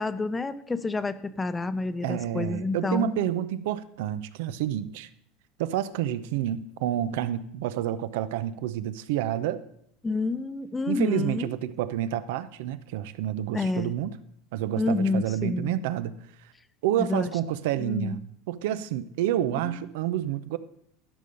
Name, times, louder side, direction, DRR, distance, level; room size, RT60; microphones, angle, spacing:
voice 1, 0.0-3.1 10.0-11.5 13.5-13.9 14.8-15.7 17.0-17.3 17.8-18.3 19.6-19.8, left 3 dB, 15° left, 13 dB, 0.7 m, -29 dB
voice 2, 2.0-5.1 5.6-9.6 10.9-14.1 14.5-16.1 16.8-20.6, right 11 dB, 75° right, 14 dB, 0.7 m, -29 dB
12.5 x 5.3 x 6.8 m, 0.71 s
supercardioid pair, 105°, 0 cm